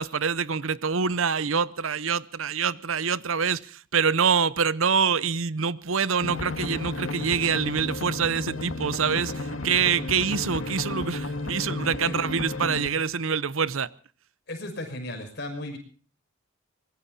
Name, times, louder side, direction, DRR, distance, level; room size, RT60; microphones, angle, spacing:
voice 1, 0.0-13.9, right 6 dB, 75° right, 0.8 m, -25 dB
sound 1, 6.2-12.9, left 2 dB, 80° left, 2.1 m, -33 dB
voice 2, 14.5-15.8, left 1 dB, 50° left, 6.3 m, -35 dB
25.0 x 21.5 x 2.7 m
head